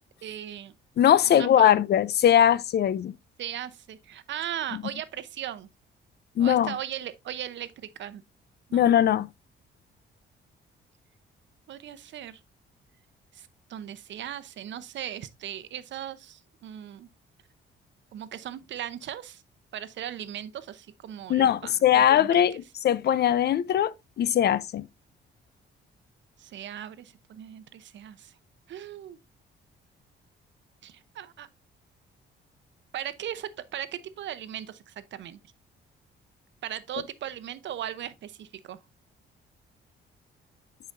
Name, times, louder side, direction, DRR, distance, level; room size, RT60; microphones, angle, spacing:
voice 1, 0.2-0.7 1.3-1.8 3.4-5.7 6.4-8.2 8.7-8.9 11.7-12.4 13.3-17.1 18.1-19.4 19.7-22.4 26.4-28.3 28.7-29.2 30.8-31.5 32.9-35.4 36.6-38.8, right 11 dB, 65° right, 0.8 m, -38 dB
voice 2, 1.0-3.1 6.4-6.7 8.7-9.3 21.3-24.9, left 10 dB, 55° left, 0.5 m, -21 dB
9.6 x 4.9 x 2.5 m
cardioid pair, 90°, 20 cm